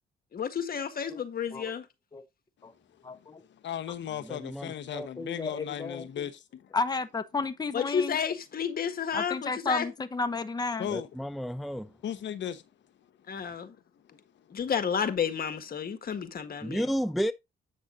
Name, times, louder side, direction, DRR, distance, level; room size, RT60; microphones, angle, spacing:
voice 1, 0.3-1.8 7.7-9.9 13.3-13.7 14.5-16.8, left 7 dB, 50° left, 1.6 m, -31 dB
voice 2, 3.0-3.4 5.2-6.3 6.7-8.2 9.1-10.9, left 3 dB, 20° left, 1.0 m, -32 dB
voice 3, 3.6-6.3 10.8-11.1 12.0-12.6, left 10 dB, 65° left, 1.0 m, -35 dB
voice 4, 4.2-5.1 10.9-11.9 16.6-17.3, equal, ahead, 0.5 m, -32 dB
8.6 x 6.2 x 3.8 m
cardioid pair, 90°, 20 cm